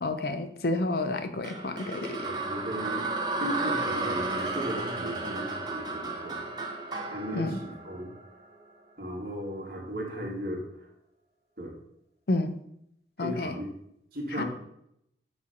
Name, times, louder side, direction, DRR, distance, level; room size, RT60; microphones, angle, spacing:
voice 1, 0.0-2.2 7.3-7.6 12.3-12.6 13.2-13.6 14.4-14.5, left 2 dB, 60° left, 8 dB, 0.6 m, -30 dB
sound 1, 1.4-8.6, right 3 dB, 25° right, 0.8 m, -33 dB
voice 2, 2.2-3.1 3.4-6.5 7.1-8.1 9.0-10.6 11.6-11.7 13.2-13.7 14.1-14.4, equal, 55° right, -2 dB, 1.8 m, -36 dB
8.1 x 3.4 x 5.3 m, 0.75 s
head